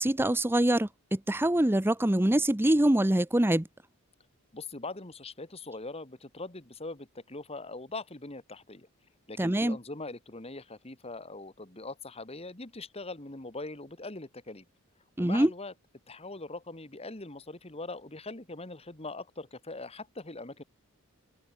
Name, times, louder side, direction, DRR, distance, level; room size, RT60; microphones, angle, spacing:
voice 1, 0.0-3.7 9.4-9.8 15.2-15.5, right 1 dB, 10° right, 0.7 m, -24 dB
voice 2, 4.5-8.9 9.3-14.6 15.2-15.7 16.1-20.6, left 2 dB, 25° left, 1.9 m, -41 dB
open air
head